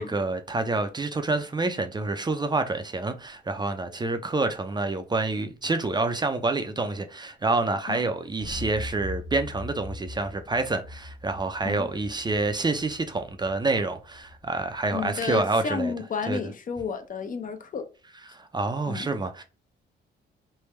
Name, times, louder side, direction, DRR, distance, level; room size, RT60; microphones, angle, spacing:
voice 1, 0.0-15.9 16.3-16.4 18.3-19.4, right 3 dB, 20° right, 0.5 m, -27 dB
sound 1, 8.4-15.3, left 1 dB, 75° right, 0.8 m, -41 dB
voice 2, 14.9-17.9 18.9-19.1, left 5 dB, 45° left, 0.6 m, -31 dB
3.3 x 2.2 x 3.1 m
cardioid pair, 90°, 20 cm